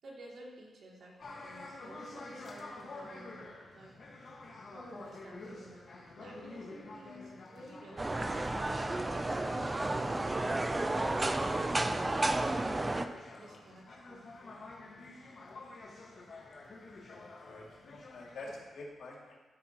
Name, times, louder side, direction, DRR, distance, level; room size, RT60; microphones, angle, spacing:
voice 1, 0.0-3.9 4.7-8.9 9.2-12.4 13.4-14.2, right 1 dB, 65° right, -4 dB, 2.7 m, -53 dB
sound 1, 1.2-18.6, left 2 dB, 50° left, 1.6 m, -49 dB
sound 2, 8.0-13.1, right 2 dB, 20° right, 0.5 m, -32 dB
voice 2, 17.0-19.4, left 2 dB, 75° left, -3 dB, 2.4 m, -47 dB
13.5 x 9.0 x 3.0 m, 1.3 s
wide cardioid pair, 130°, 0 cm